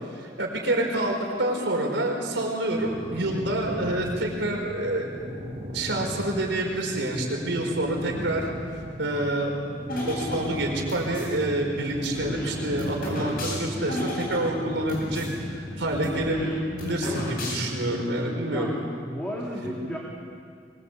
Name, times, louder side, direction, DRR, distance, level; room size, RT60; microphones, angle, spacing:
voice 1, 0.1-5.1 5.7-8.4 9.0-9.5 10.1-18.7 19.6-19.7, right 1 dB, 75° right, 0 dB, 4.8 m, -27 dB
sound 1, 2.7-16.5, equal, 40° right, 5.1 m, -37 dB
sound 2, 9.9-11.3 11.9-15.3 15.6-15.7 15.9-17.9, left 1 dB, 55° left, 7.8 m, -34 dB
voice 2, 19.0-20.0, equal, 10° left, -4 dB, 3.1 m, -34 dB
24.0 x 22.5 x 8.3 m, 2.2 s
head